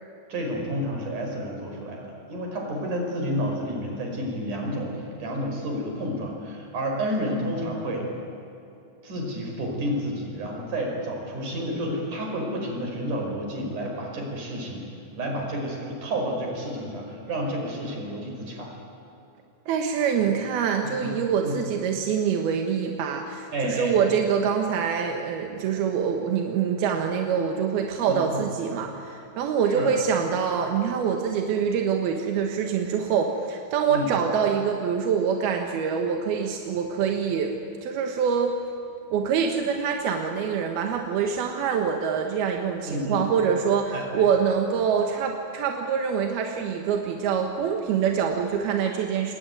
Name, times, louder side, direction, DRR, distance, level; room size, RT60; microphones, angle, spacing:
voice 1, 0.3-8.1 9.0-14.8 15.2-18.7 20.8-21.1 21.4-21.6 23.5-24.0 28.1-28.5 29.7-29.9 33.9-34.1 42.9-43.2 43.9-44.2, equal, 55° right, 0 dB, 6.6 m, -30 dB
voice 2, 19.7-37.5 37.8-38.5 39.1-49.3, right 7 dB, 90° right, 3 dB, 3.4 m, -25 dB
28.0 x 21.0 x 9.3 m, 2.8 s
omnidirectional pair, 4.2 m